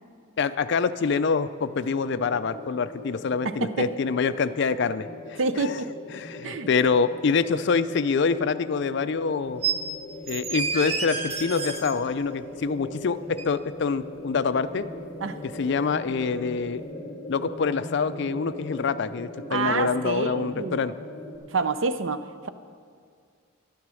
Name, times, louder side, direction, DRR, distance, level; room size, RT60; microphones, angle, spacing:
voice 1, 0.4-5.8 6.1-9.6 10.3-14.9 15.4-16.8 17.3-20.9, left 5 dB, 55° left, 12 dB, 0.4 m, -26 dB
sound 1, 1.6-21.4, left 1 dB, 30° left, 1.5 m, -40 dB
voice 2, 3.4-3.9 5.4-5.9 6.4-6.7 15.2-15.4 19.5-20.8 21.5-22.5, right 4 dB, 65° right, 12 dB, 0.6 m, -27 dB
sound 2, 9.6-9.8 10.3-11.9 13.4-13.5, right 5 dB, 30° right, 0.7 m, -29 dB
11.0 x 10.5 x 6.2 m, 2.1 s
head